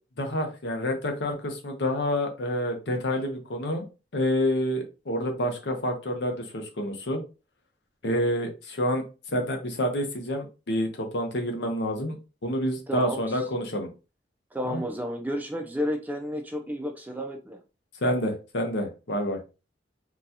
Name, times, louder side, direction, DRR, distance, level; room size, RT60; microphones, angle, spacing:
voice 1, 0.2-3.8 4.1-7.2 8.0-9.0 9.3-12.2 12.4-13.9 14.6-14.8 18.0-19.4, equal, 75° left, 3 dB, 0.8 m, -28 dB
voice 2, 12.9-13.2 14.5-17.6, equal, 10° right, 4 dB, 0.4 m, -31 dB
3.9 x 2.3 x 2.7 m, 0.31 s
head